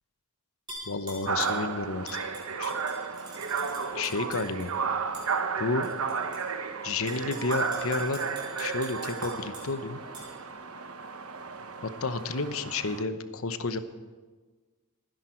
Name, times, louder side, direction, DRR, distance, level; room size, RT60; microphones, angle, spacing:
Tap / Glass, 0.7-1.6 2.1-4.7 5.1-5.3 5.8-6.4 6.9-9.7 10.1-10.3, right 1 dB, 20° right, 5.0 m, -44 dB
voice 1, 0.9-2.1 2.6-2.7 3.9-4.7 5.6-5.9 6.8-8.2 8.6-10.0 11.8-13.8, left 3 dB, 75° left, 10 dB, 1.0 m, -31 dB
sound 1, 1.3-13.0, right 5 dB, 80° right, 1.0 m, -33 dB
27.5 x 10.5 x 4.5 m, 1.4 s
head